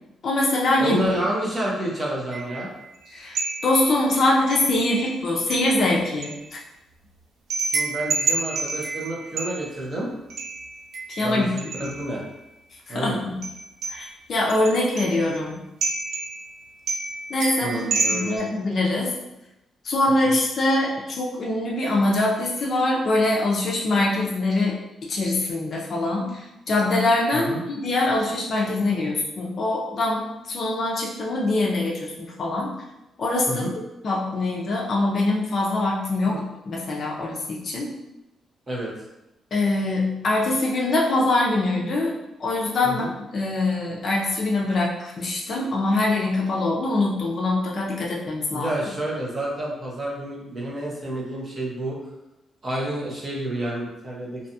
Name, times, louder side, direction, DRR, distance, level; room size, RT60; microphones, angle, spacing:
voice 1, 0.2-1.0 3.1-3.4 3.6-6.6 11.1-11.5 11.8-11.9 12.9-13.4 14.0-15.6 17.3-17.8 18.1-19.1 19.8-24.8 25.1-32.7 33.2-33.6 34.0-37.9 39.5-42.1 42.4-43.0 43.3-48.7, left 2 dB, 40° left, -3 dB, 0.4 m, -23 dB
voice 2, 0.8-2.7 7.7-10.1 11.2-12.2 12.9-13.2 17.6-18.4 27.3-27.6 33.5-33.7 36.3-36.4 38.7-38.9 42.8-43.1 48.5-52.0 52.6-54.4, right 1 dB, 25° right, -3 dB, 0.5 m, -29 dB
sound 1, 2.3-2.8 3.3-4.0 4.5-5.2 5.5-6.4 7.5-9.8 10.3-12.1 13.4-14.1 14.5-15.4 15.8-16.6 16.9-18.4, right 3 dB, 85° right, 0.4 m, -29 dB
2.6 x 2.2 x 2.6 m, 0.94 s
cardioid pair, 180°, 0 cm